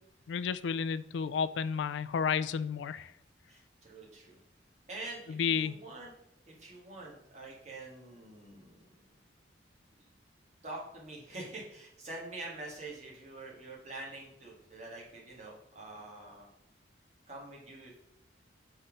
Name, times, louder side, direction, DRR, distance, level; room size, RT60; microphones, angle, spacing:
voice 1, 0.3-3.1 5.3-5.7, left 6 dB, 80° left, 16 dB, 0.3 m, -31 dB
voice 2, 3.5-4.4 4.9-6.1 6.5-8.9 10.0-10.1 10.6-16.5 17.3-18.0, right 2 dB, 40° right, -3 dB, 1.8 m, -46 dB
5.6 x 4.2 x 5.1 m, 0.77 s
head